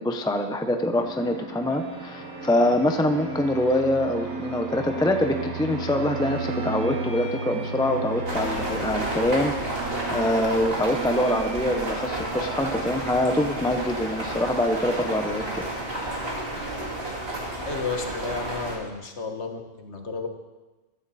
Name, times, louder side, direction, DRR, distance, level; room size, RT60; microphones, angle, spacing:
voice 1, 0.0-9.5 10.1-15.6, left 1 dB, 5° left, 6 dB, 0.4 m, -25 dB
Fixed-wing aircraft airplane, 1.0-16.2, right 3 dB, 90° right, 1.8 m, -35 dB
Bowed string instrument, 1.7-17.5, right 1 dB, 15° right, 2.8 m, -44 dB
sound 1, 8.3-18.8, right 1 dB, 40° right, 2.6 m, -31 dB
voice 2, 17.7-20.3, left 4 dB, 55° left, 5 dB, 1.4 m, -32 dB
14.5 x 12.5 x 4.2 m, 1.2 s
omnidirectional pair, 1.5 m